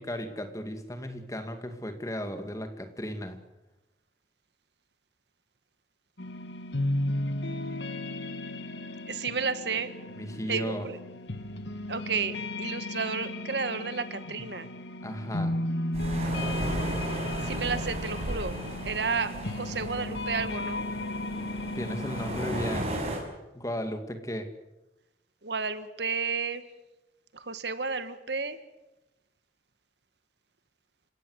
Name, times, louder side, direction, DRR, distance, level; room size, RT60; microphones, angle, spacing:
voice 1, 0.0-3.4 10.1-10.9 15.0-15.6 21.8-22.9 23.5-24.5, equal, 20° left, 7 dB, 2.3 m, -35 dB
sound 1, 6.2-22.8, left 1 dB, 85° left, 1.7 m, -34 dB
voice 2, 9.1-9.9 10.5-11.0 11.9-14.7 17.4-18.6 18.8-20.8 25.4-26.6 27.3-28.6, right 5 dB, 75° right, 12 dB, 1.6 m, -32 dB
sound 2, 15.9-23.2, right 1 dB, 35° right, 6.2 m, -35 dB
29.5 x 17.5 x 8.1 m, 1.0 s
head